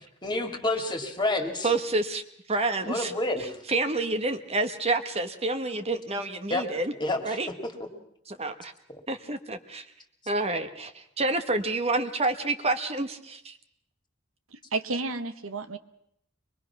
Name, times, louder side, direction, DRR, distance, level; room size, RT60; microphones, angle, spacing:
voice 1, 0.2-1.7 2.9-3.6 6.5-6.7 7.0-7.7, left 2 dB, 20° left, 5 dB, 2.3 m, -29 dB
voice 2, 1.6-2.2 2.5-3.1 3.4-6.9 7.2-7.5 8.3-8.7 9.1-9.8 10.3-13.6, right 2 dB, 30° right, 8 dB, 1.1 m, -28 dB
voice 3, 14.5-15.8, right 3 dB, 90° right, 10 dB, 1.2 m, -32 dB
24.0 x 21.5 x 5.9 m, 0.73 s
head